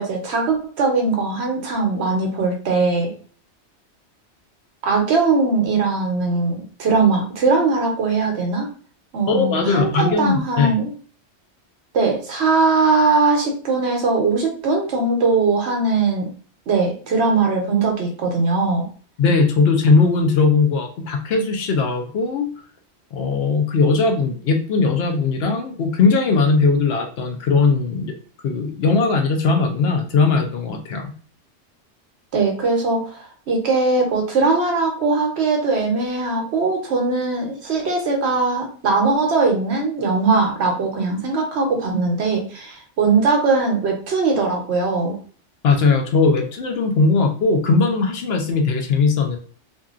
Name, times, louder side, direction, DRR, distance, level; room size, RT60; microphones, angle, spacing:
voice 1, 0.0-3.1 4.8-8.7 9.1-10.9 11.9-16.3 16.7-18.9 32.3-33.2 33.5-45.2, right 3 dB, 70° right, 1 dB, 1.0 m, -20 dB
voice 2, 9.3-10.7 19.2-22.5 23.1-28.1 28.4-31.1 45.6-49.4, left 4 dB, 65° left, 3 dB, 0.8 m, -19 dB
2.7 x 2.5 x 2.4 m, 0.42 s
omnidirectional pair, 1.2 m